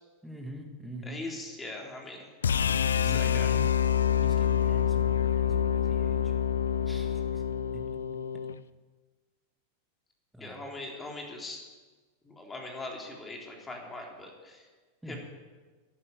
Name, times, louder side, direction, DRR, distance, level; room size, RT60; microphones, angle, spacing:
voice 1, 0.2-1.2 3.0-3.7 4.2-6.3 6.8-7.4 7.7-8.0 10.3-10.6 15.0-15.2, right 1 dB, 5° right, 3 dB, 2.1 m, -44 dB
voice 2, 1.0-2.3 3.0-3.5 10.4-11.6 12.2-14.6 15.1-15.2, left 2 dB, 15° left, 1 dB, 3.4 m, -41 dB
sound 1, 2.4-8.6, left 9 dB, 70° left, 0.5 m, -27 dB
11.5 x 11.0 x 9.1 m, 1.3 s
figure-of-eight pair, 90°, 0 cm